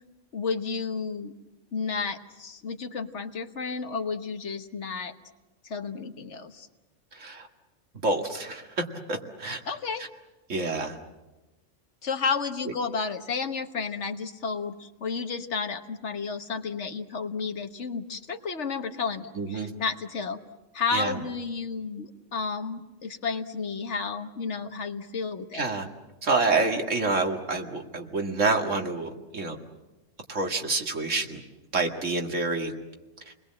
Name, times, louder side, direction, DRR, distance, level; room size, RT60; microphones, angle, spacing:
voice 1, 0.3-1.3 1.7-5.1 5.6-6.7 9.6-10.0 12.0-20.4 20.7-25.7, left 5 dB, 65° left, 7 dB, 1.6 m, -32 dB
voice 2, 7.2-7.5 8.0-9.6 10.5-11.0 19.4-19.7 20.9-21.1 25.5-25.9 26.2-29.6 30.3-31.4 31.7-32.7, right 3 dB, 75° right, 3 dB, 2.4 m, -27 dB
29.0 x 21.0 x 7.6 m, 1.1 s
omnidirectional pair, 1.3 m